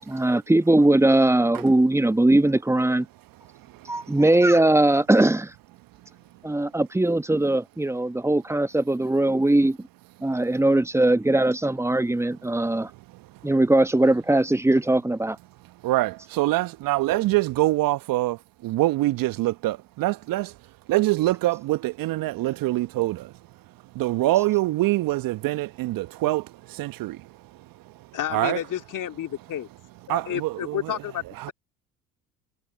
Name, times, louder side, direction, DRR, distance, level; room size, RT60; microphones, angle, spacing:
voice 1, 0.1-3.1 3.9-5.5 6.4-9.8 10.2-12.9 13.4-15.4, right 1 dB, 5° right, 1.2 m, -20 dB
voice 2, 15.8-20.5 20.9-23.3 23.9-27.2 28.3-28.6 30.1-31.0 31.4-31.5, right 17 dB, 50° right, 1.3 m, -24 dB
voice 3, 28.1-29.7 30.1-31.5, left 11 dB, 45° left, 3.3 m, -31 dB
figure-of-eight pair, 60°, 42 cm